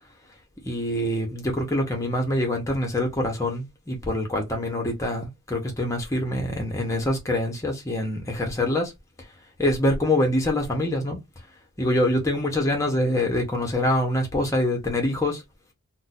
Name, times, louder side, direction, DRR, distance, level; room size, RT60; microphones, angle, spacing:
voice 1, 0.6-8.9 9.6-11.2 11.8-15.4, left 1 dB, 15° left, 0.8 m, -25 dB
2.6 x 2.2 x 4.0 m
head